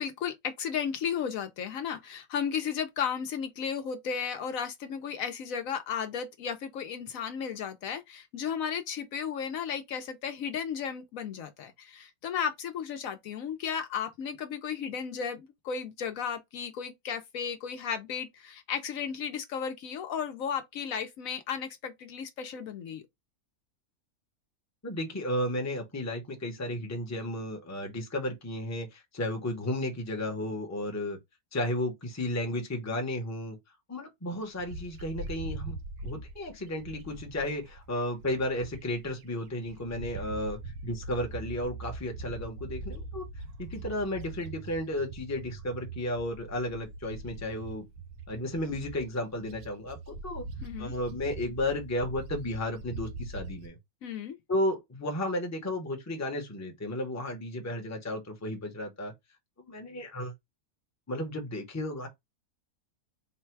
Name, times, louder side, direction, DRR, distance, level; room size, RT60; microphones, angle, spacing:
voice 1, 0.0-23.0 50.6-50.9 54.0-54.4, left 7 dB, 70° left, 1.0 m, -34 dB
voice 2, 24.8-31.2 31.5-33.6 33.9-35.8 36.0-43.2 43.6-47.9 48.3-50.4 50.8-53.8 54.5-59.1 59.7-60.3 61.1-62.1, left 1 dB, 15° left, 0.7 m, -33 dB
Bird, 34.6-39.1 39.5-53.7, right 2 dB, 85° right, 1.2 m, -42 dB
4.0 x 2.2 x 4.5 m
omnidirectional pair, 1.6 m